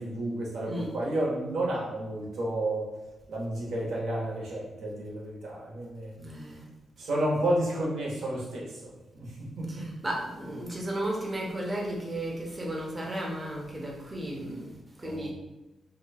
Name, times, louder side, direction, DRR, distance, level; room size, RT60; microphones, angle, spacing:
voice 1, 0.0-2.9 3.3-6.1 7.0-9.9 15.0-15.3, right 1 dB, 80° right, -3 dB, 1.1 m, -31 dB
voice 2, 6.2-6.6 9.7-14.7 15.0-15.3, right 1 dB, 20° right, -2 dB, 0.8 m, -34 dB
2.8 x 2.2 x 4.1 m, 1.0 s
cardioid pair, 110°, 0 cm